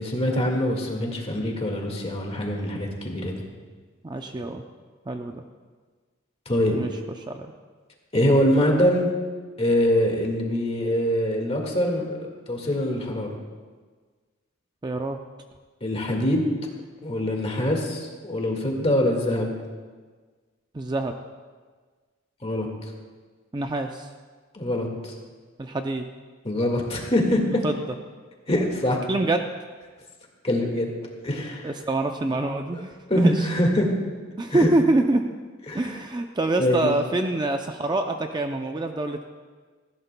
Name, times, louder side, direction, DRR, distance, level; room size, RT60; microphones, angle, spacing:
voice 1, 0.0-3.4 6.5-6.8 8.1-9.1 9.6-13.4 15.8-16.5 17.0-19.5 22.4-22.7 24.5-25.1 26.4-27.4 28.5-29.0 30.4-30.9 31.2-31.7 33.1-33.9 34.5-34.7 35.7-36.0 36.6-36.9, left 1 dB, 30° left, 1 dB, 1.8 m, -24 dB
voice 2, 4.0-4.6 5.1-5.4 6.7-6.9 7.3-7.5 14.8-15.2 20.7-21.1 23.5-24.1 25.6-26.0 27.6-27.8 29.1-29.5 31.6-33.5 34.4-35.2 35.7-39.2, right 2 dB, 20° right, 5 dB, 0.5 m, -25 dB
18.5 x 15.0 x 2.2 m, 1.5 s
head